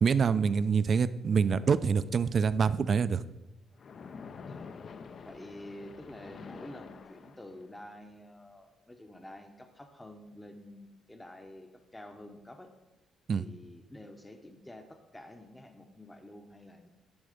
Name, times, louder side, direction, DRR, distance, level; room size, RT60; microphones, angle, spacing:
voice 1, 0.0-3.2 13.3-13.4, right 6 dB, 50° right, 15 dB, 0.3 m, -26 dB
Splash splatter, 3.8-7.8, left 5 dB, 50° left, 0.5 m, -47 dB
voice 2, 5.2-12.7 13.3-16.9, left 1 dB, 10° left, 6 dB, 0.7 m, -49 dB
10.5 x 4.0 x 5.0 m, 1.0 s
cardioid pair, 90°, 0 cm